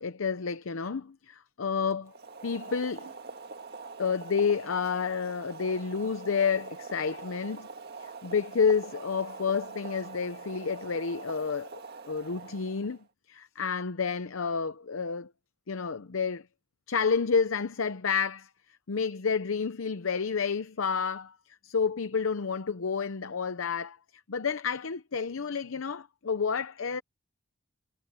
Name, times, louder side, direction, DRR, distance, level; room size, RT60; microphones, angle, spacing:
voice 1, 0.0-2.1 2.4-3.1 4.0-7.7 8.0-11.8 12.1-13.0 13.3-15.3 15.7-16.5 16.9-18.5 18.9-24.0 24.3-27.0, left 5 dB, 90° left, 0.7 m, -30 dB
Boiling, 2.0-13.0, right 4 dB, 55° right, 1.8 m, -44 dB
head